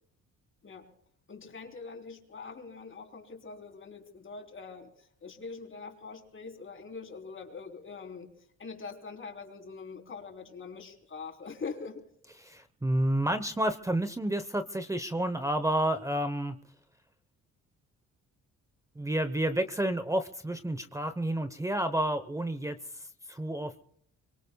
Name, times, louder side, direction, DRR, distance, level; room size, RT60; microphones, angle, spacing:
voice 1, 1.3-8.3 8.6-12.0, left 4 dB, 40° left, 3 dB, 3.7 m, -43 dB
voice 2, 12.4-16.6 19.0-23.8, right 1 dB, 10° right, 9 dB, 1.0 m, -30 dB
24.0 x 24.0 x 2.3 m, 0.68 s
cardioid pair, 90°, 30 cm